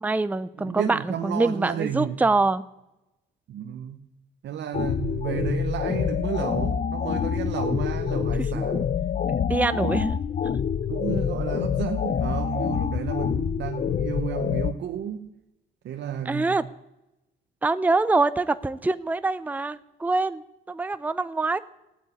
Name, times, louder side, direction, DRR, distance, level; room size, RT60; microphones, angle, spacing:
voice 1, 0.0-2.6 8.4-8.8 9.3-10.2 10.4-10.6 16.3-16.6 17.6-21.6, right 3 dB, 10° right, 0.5 m, -25 dB
voice 2, 0.6-2.2 3.5-4.1 4.4-9.0 9.7-10.0 10.9-15.3 15.8-16.6, right 9 dB, 65° right, 0.9 m, -32 dB
sound 1, 4.7-14.7, left 7 dB, 40° left, 0.6 m, -26 dB
15.0 x 9.1 x 8.5 m
cardioid pair, 90°, 20 cm